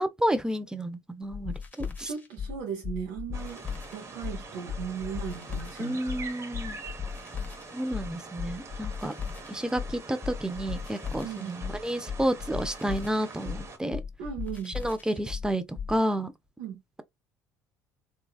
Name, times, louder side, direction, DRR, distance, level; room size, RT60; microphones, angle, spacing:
voice 1, 0.0-2.1 5.8-6.8 7.7-9.2 9.5-14.0 14.7-15.6 15.9-16.3, right 1 dB, 10° right, 0.5 m, -30 dB
sound 1, 1.3-16.0, left 6 dB, 20° left, 1.0 m, -37 dB
voice 2, 2.0-3.6 3.9-6.0 11.2-11.6 14.2-14.8 16.6-16.8, right 8 dB, 65° right, 0.6 m, -37 dB
sound 2, 3.3-13.8, right 4 dB, 35° right, 0.8 m, -44 dB
3.2 x 2.2 x 2.3 m
hypercardioid pair, 60°, 8 cm